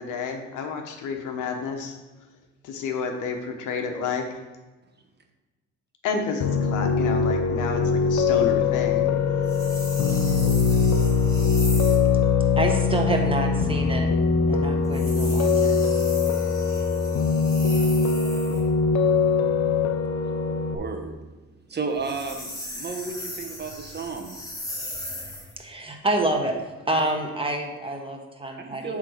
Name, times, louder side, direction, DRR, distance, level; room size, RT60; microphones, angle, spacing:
voice 1, 0.0-2.0 2.6-4.2 6.0-9.1, left 5 dB, 90° left, 4 dB, 1.1 m, -30 dB
Piano, 6.4-20.8, left 5 dB, 65° left, 0.8 m, -22 dB
sound 1, 9.4-12.1 14.8-18.7 21.9-25.6, left 1 dB, 10° left, 2.1 m, -37 dB
voice 2, 12.6-14.1 14.5-15.8 25.6-26.6 26.9-29.0, right 2 dB, 20° right, 2 dB, 1.4 m, -27 dB
voice 3, 20.7-21.1 21.7-24.4 28.6-29.0, right 4 dB, 35° right, 4 dB, 1.2 m, -32 dB
8.5 x 3.7 x 6.4 m, 1.2 s
cardioid pair, 90°, 30 cm